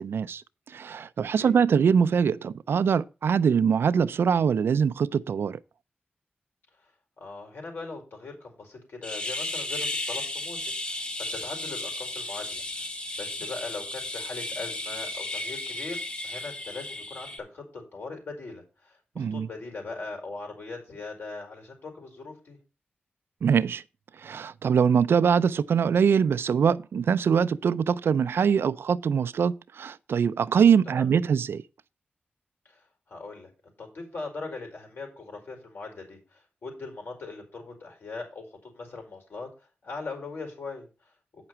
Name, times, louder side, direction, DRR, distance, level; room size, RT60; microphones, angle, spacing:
voice 1, 0.0-5.6 19.2-19.5 23.4-23.8 24.2-31.6, right 7 dB, 80° right, 0.5 m, -23 dB
voice 2, 7.2-12.9 13.2-22.6 30.9-31.1 32.6-41.5, left 3 dB, 70° left, 4.7 m, -40 dB
sound 1, 9.0-17.4, left 2 dB, 30° left, 1.4 m, -34 dB
8.8 x 5.9 x 5.7 m
wide cardioid pair, 85°, 4 cm